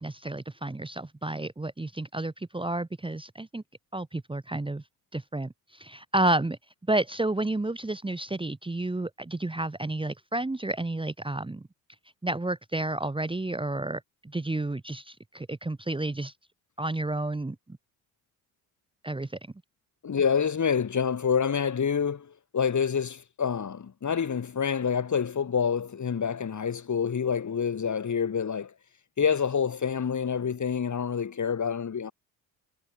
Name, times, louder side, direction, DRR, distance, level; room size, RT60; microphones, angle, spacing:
voice 1, 0.0-3.6 3.9-4.8 5.1-6.6 6.9-11.7 12.2-16.3 16.8-17.8 19.0-19.4, right 2 dB, 10° right, 1.4 m, -31 dB
voice 2, 20.0-28.7 29.2-32.1, left 6 dB, 40° left, 3.0 m, -27 dB
hypercardioid pair, 55°, 44 cm